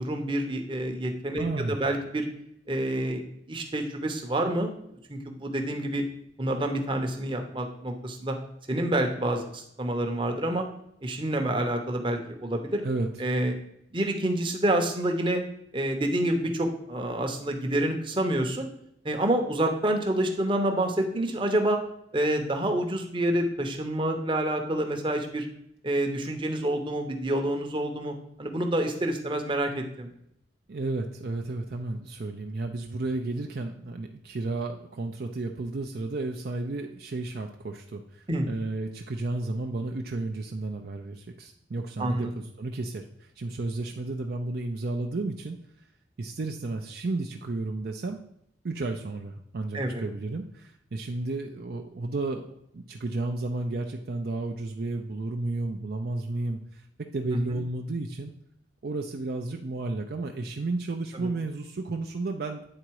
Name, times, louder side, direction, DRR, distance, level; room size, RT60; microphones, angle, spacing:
voice 1, 0.0-2.3 2.7-3.2 3.5-4.7 5.1-6.0 6.4-8.4 8.7-10.6 11.0-12.8 13.2-13.5 13.9-15.4 15.7-18.7 19.0-21.8 22.1-25.5 25.8-30.1 38.3-38.5 42.0-42.3 49.7-50.0 57.3-57.4 61.1-61.3, right 1 dB, 25° right, 3 dB, 0.8 m, -28 dB
voice 2, 1.4-1.8 12.8-13.1 30.7-45.6 46.2-48.2 48.6-58.3 58.8-62.7, right 2 dB, 55° right, 3 dB, 0.5 m, -32 dB
8.6 x 3.9 x 4.6 m, 0.74 s
head